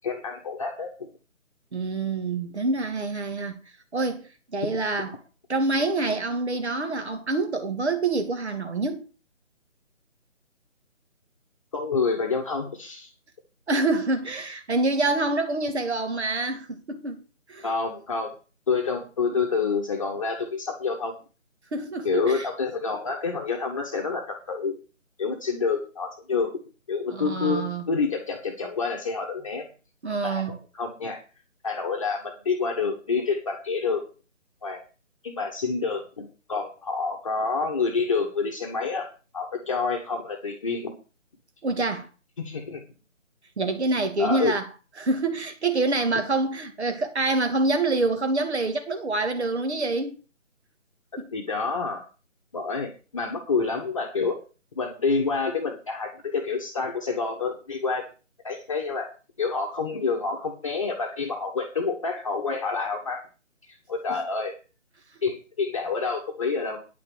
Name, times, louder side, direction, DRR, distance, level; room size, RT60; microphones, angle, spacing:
voice 1, 0.0-0.9 11.7-13.1 17.6-18.3 18.7-21.2 22.0-24.8 25.2-26.5 26.9-29.7 30.2-31.2 31.6-34.0 34.6-34.8 35.2-39.1 39.3-40.9 42.4-42.8 44.2-44.5 51.3-52.1 52.5-54.4 54.7-58.1 58.4-59.1 59.4-63.2 63.7-64.5 65.2-66.8, left 4 dB, 25° left, 1.3 m, -28 dB
voice 2, 1.7-3.6 3.9-5.1 5.5-9.0 13.7-17.2 17.5-17.7 21.7-22.5 27.1-27.8 30.0-30.6 41.6-42.1 43.6-44.7 45.0-50.2 64.1-64.2, right 3 dB, 55° right, 2.6 m, -26 dB
9.5 x 5.9 x 7.7 m
figure-of-eight pair, 165°, 39 cm